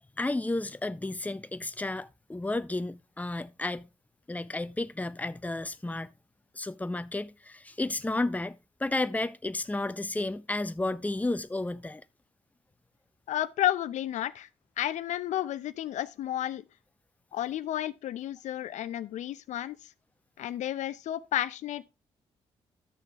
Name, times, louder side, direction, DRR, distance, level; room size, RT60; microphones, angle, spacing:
voice 1, 0.2-3.9 4.3-6.1 6.5-12.0, left 2 dB, 10° left, 0.7 m, -32 dB
voice 2, 13.3-14.5 14.8-16.6 17.3-19.8 20.4-21.8, left 12 dB, 70° left, 0.6 m, -32 dB
12.0 x 6.6 x 3.5 m
hypercardioid pair, 45°, 13 cm